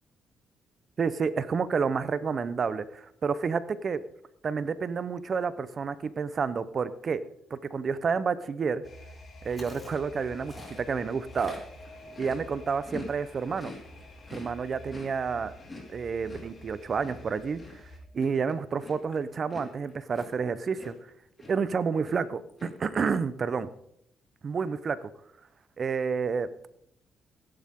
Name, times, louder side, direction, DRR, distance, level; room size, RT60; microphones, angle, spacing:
voice 1, 1.0-4.0 4.4-7.2 7.5-8.8 9.4-11.6 12.2-13.7 14.3-15.6 15.9-17.6 18.1-21.0 21.5-23.7 24.4-25.0 25.8-26.5, right 5 dB, 45° right, 15 dB, 0.9 m, -29 dB
sound 1, 8.8-18.0, left 1 dB, 45° left, 3.4 m, -49 dB
Chewing mastication, 9.4-13.1 13.4-21.1 21.4-21.7 22.0-22.7, left 2 dB, 25° left, 4.6 m, -46 dB
16.5 x 11.5 x 3.8 m, 0.71 s
cardioid pair, 90°, 0 cm